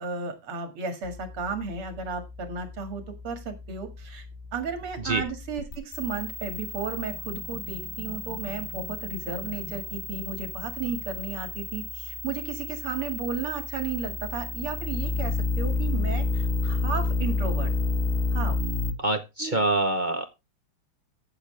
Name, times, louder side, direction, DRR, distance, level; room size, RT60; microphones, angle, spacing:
voice 1, 0.0-4.3 4.5-17.7 18.3-18.6 19.4-19.6, right 5 dB, 80° right, 7 dB, 3.0 m, -34 dB
sound 1, 1.0-18.9, left 3 dB, 30° left, 1.7 m, -31 dB
voice 2, 19.0-20.3, right 2 dB, 50° right, 7 dB, 0.5 m, -25 dB
14.5 x 7.1 x 3.3 m, 0.25 s
omnidirectional pair, 2.4 m